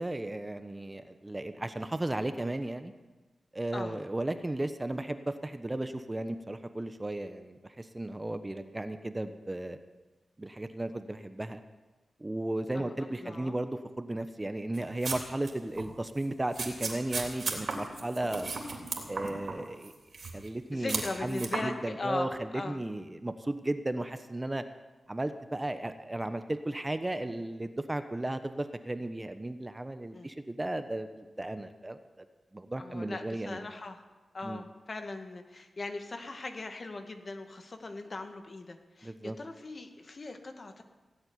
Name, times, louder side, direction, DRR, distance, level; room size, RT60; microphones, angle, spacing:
voice 1, 0.0-2.9 3.5-9.8 10.4-11.6 12.2-18.5 19.1-19.9 20.3-24.6 25.1-32.0 32.5-33.7 34.4-34.6 39.0-39.4, right 1 dB, 20° right, 9 dB, 1.1 m, -35 dB
voice 2, 13.2-13.6 20.7-22.8 30.1-30.3 32.8-34.0 34.3-40.8, left 3 dB, 50° left, 6 dB, 2.0 m, -39 dB
sound 1, 14.7-15.5 15.7-15.9 16.5-19.6 19.8-20.5 20.9-21.6, right 4 dB, 65° right, 3.3 m, -35 dB
17.5 x 8.0 x 9.7 m, 1.2 s
cardioid pair, 60°, 0 cm